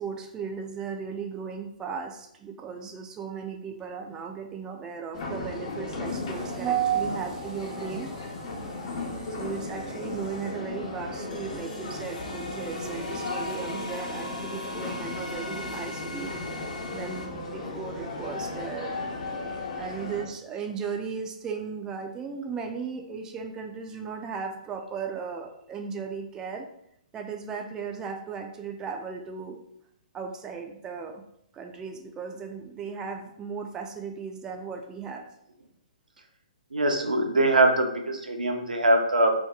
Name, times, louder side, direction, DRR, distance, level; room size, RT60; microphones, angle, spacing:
voice 1, 0.0-16.4 16.9-19.0 19.8-26.7 27.1-29.6 30.1-31.2 31.5-35.2, right 6 dB, 15° right, 3 dB, 0.3 m, -35 dB
sound 1, 5.1-20.2, left 2 dB, 50° left, 0.8 m, -36 dB
sound 2, 11.3-17.3, left 1 dB, 75° left, 1.0 m, -39 dB
voice 2, 36.7-39.3, right 1 dB, 90° right, 3 dB, 0.6 m, -22 dB
2.8 x 2.2 x 3.6 m, 0.73 s
hypercardioid pair, 130°, 4 cm